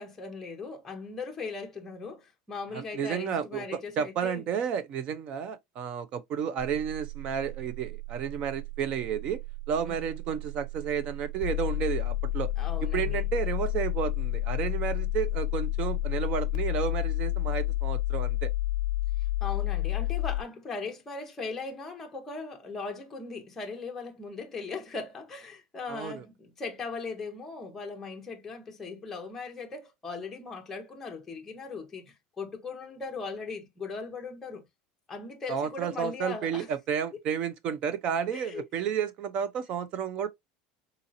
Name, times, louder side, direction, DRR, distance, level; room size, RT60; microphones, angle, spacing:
voice 1, 0.0-4.4 9.9-10.1 12.6-13.2 19.4-34.7 35.1-36.7 38.3-38.6, left 4 dB, 10° left, 0.7 m, -39 dB
voice 2, 2.7-9.4 9.7-12.5 12.9-18.5 25.9-26.2 35.5-40.3, right 8 dB, 35° right, 0.4 m, -31 dB
sound 1, 6.6-20.4, left 12 dB, 55° left, 0.5 m, -31 dB
3.8 x 2.8 x 2.5 m
cardioid pair, 175°, 3 cm